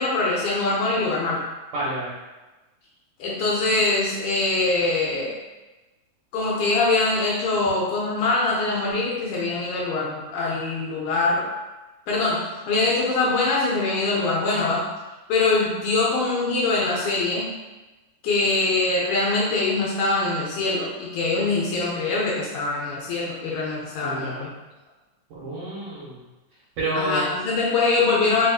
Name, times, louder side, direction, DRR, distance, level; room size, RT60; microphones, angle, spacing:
voice 1, 0.0-1.4 3.2-5.4 6.3-11.5 12.1-12.4 12.7-14.8 15.3-17.5 18.2-24.5 26.9-28.5, left 3 dB, 75° left, -4 dB, 1.9 m, -23 dB
voice 2, 1.7-2.1 24.0-24.5 25.3-26.2 26.8-27.2, right 1 dB, 70° right, -10 dB, 2.0 m, -29 dB
4.9 x 2.5 x 2.3 m, 1.1 s
omnidirectional pair, 3.7 m